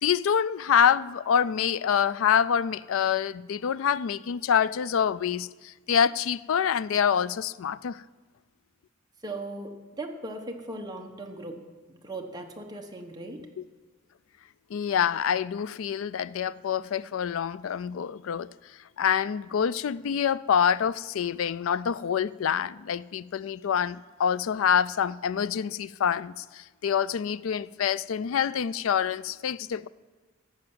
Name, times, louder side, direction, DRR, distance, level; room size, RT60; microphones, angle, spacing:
voice 1, 0.0-8.0 13.6-13.7 14.7-18.5 19.0-29.9, left 8 dB, 90° left, 0.4 m, -26 dB
voice 2, 9.2-11.6 11.9-13.5, right 2 dB, 20° right, 1.3 m, -38 dB
14.0 x 5.8 x 8.8 m
head